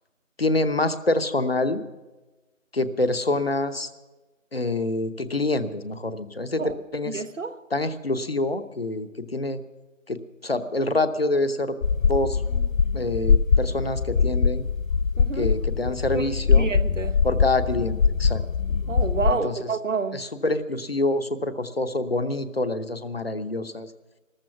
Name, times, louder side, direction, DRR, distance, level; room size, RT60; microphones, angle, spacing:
voice 1, 0.4-1.8 2.7-3.9 4.5-6.6 6.9-7.2 7.7-9.6 10.1-11.8 12.1-12.4 12.9-14.6 15.4-16.7 17.2-18.4 19.3-19.7 20.1-23.9, left 2 dB, 50° left, 0.9 m, -26 dB
voice 2, 7.1-7.5 15.2-15.5 16.1-17.1 18.9-20.2, right 4 dB, 70° right, 1.0 m, -29 dB
sound 1, 11.8-19.3, left 5 dB, 85° left, 0.6 m, -22 dB
14.5 x 13.5 x 5.8 m
figure-of-eight pair, 170°, 39 cm